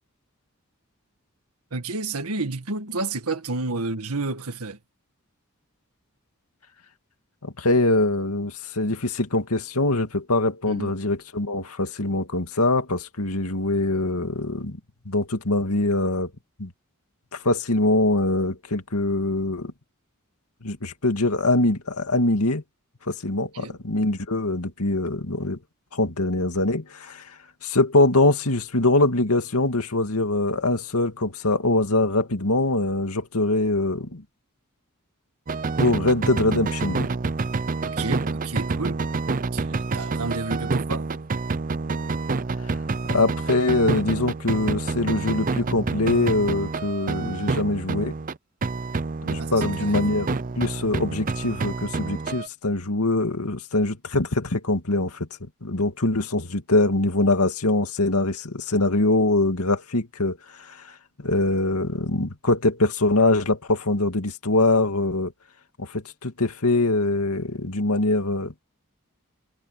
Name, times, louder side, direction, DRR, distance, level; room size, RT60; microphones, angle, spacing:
voice 1, 1.7-4.8 10.7-11.0 23.5-23.8 37.8-39.0 39.5-41.1 47.2-47.3 49.4-50.0, right 3 dB, 85° right, 1.8 m, -31 dB
voice 2, 7.4-14.8 15.1-16.3 16.6-16.7 17.3-19.7 20.6-22.6 23.1-25.6 25.9-34.2 35.8-37.1 43.0-48.1 49.3-50.3 50.6-55.3 55.6-65.3 65.8-68.5, left 2 dB, 90° left, 2.2 m, -23 dB
sound 1, 35.5-48.4 48.6-52.5, right 3 dB, 40° right, 0.6 m, -28 dB
head